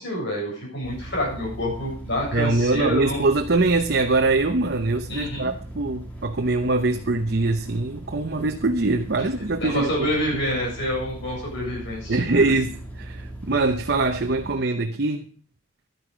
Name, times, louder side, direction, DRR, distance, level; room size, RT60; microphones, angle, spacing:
voice 1, 0.0-3.2 5.1-5.5 9.6-12.5, left 1 dB, 60° left, 7.3 m, -27 dB
sound 1, 0.8-14.5, right 1 dB, 10° left, 2.5 m, -38 dB
voice 2, 2.3-10.4 12.1-15.3, right 3 dB, 50° right, 0.8 m, -23 dB
11.5 x 10.5 x 5.1 m
head